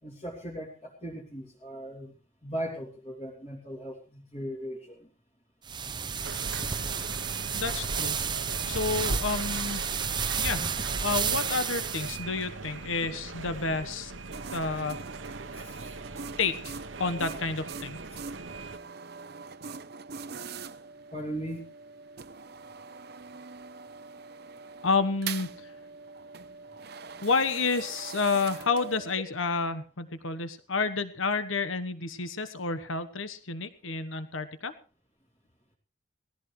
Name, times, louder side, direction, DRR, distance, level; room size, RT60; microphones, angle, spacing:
voice 1, 0.0-2.1 2.4-5.1 9.0-9.1 10.6-10.7 15.5-15.9 21.1-21.7, equal, 35° left, -3 dB, 2.9 m, -38 dB
sound 1, 5.7-12.2, right 6 dB, 20° right, 0.6 m, -31 dB
sound 2, 6.2-18.8, right 3 dB, 70° right, 1.0 m, -40 dB
voice 2, 7.5-8.2 8.7-9.8 10.4-10.6 11.0-14.1 14.5-15.0 16.4-18.0 24.8-25.7 27.2-34.7, left 4 dB, 80° left, 10 dB, 1.3 m, -30 dB
sound 3, 14.3-29.1, right 5 dB, 50° right, 0.7 m, -43 dB
19.0 x 16.0 x 3.3 m, 0.35 s
head